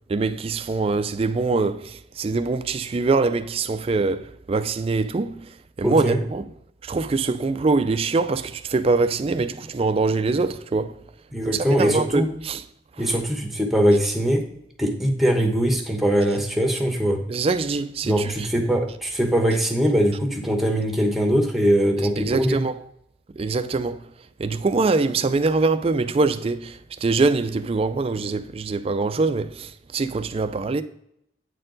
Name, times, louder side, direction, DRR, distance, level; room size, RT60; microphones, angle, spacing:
voice 1, 0.1-5.5 5.8-6.5 6.8-11.0 11.5-12.6 17.3-18.5 22.0-22.8 23.4-24.0 24.4-30.8, right 3 dB, 30° right, 0.3 m, -23 dB
voice 2, 5.8-6.2 11.3-12.3 13.0-14.4 14.8-17.2 18.0-22.6, equal, ahead, 1.0 m, -21 dB
8.8 x 4.4 x 3.8 m
head